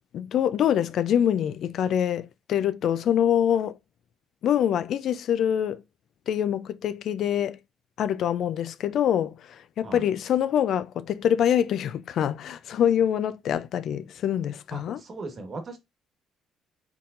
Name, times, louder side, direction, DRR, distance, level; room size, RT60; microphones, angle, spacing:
voice 1, 0.1-3.8 4.4-5.8 6.3-7.6 8.0-15.0, left 9 dB, 60° left, 0.4 m, -25 dB
voice 2, 14.7-15.8, right 3 dB, 40° right, 1.3 m, -38 dB
4.5 x 3.7 x 2.5 m
cardioid pair, 115°, 0 cm